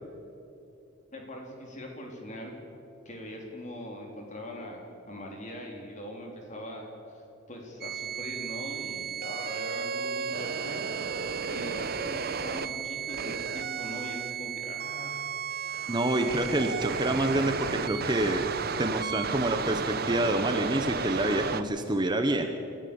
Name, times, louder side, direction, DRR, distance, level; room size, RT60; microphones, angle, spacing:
voice 1, 1.1-2.5 3.1-7.2 7.5-10.8 11.1-11.2 11.5-15.3, left 1 dB, 35° left, 0 dB, 4.0 m, -41 dB
sound 1, 7.8-21.6, right 6 dB, 50° right, 0.8 m, -33 dB
voice 2, 15.9-18.4 18.8-22.5, right 1 dB, 20° right, 6 dB, 1.0 m, -27 dB
27.0 x 14.0 x 7.1 m, 2.9 s
head